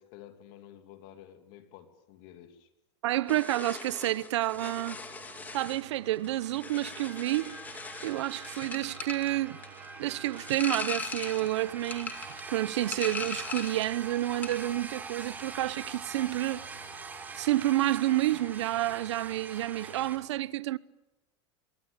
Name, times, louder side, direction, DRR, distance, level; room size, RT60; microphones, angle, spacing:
voice 1, 0.0-2.7, left 11 dB, 45° left, 2.9 m, -51 dB
voice 2, 3.0-5.0 5.5-7.6 8.0-9.6 10.0-12.1 12.5-16.6 17.4-20.8, right 15 dB, 85° right, 0.9 m, -29 dB
sound 1, 3.3-14.0 14.2-14.7, left 4 dB, 10° left, 2.1 m, -40 dB
sound 2, 4.5-20.3, right 9 dB, 40° right, 3.8 m, -53 dB
sound 3, 6.9-20.2, right 4 dB, 10° right, 2.5 m, -44 dB
26.5 x 23.0 x 9.0 m
supercardioid pair, 165°, 15 cm